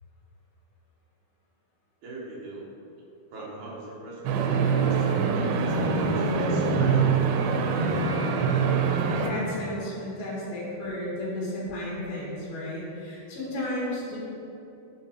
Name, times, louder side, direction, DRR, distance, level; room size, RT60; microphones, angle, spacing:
voice 1, 2.0-2.7 3.3-7.9, right 2 dB, 70° right, -5 dB, 2.0 m, -40 dB
sound 1, 4.3-9.3, right 5 dB, 90° right, 2.6 m, -24 dB
voice 2, 9.1-14.2, left 1 dB, 75° left, -6 dB, 3.5 m, -33 dB
9.6 x 5.0 x 2.8 m, 2.8 s
omnidirectional pair, 4.6 m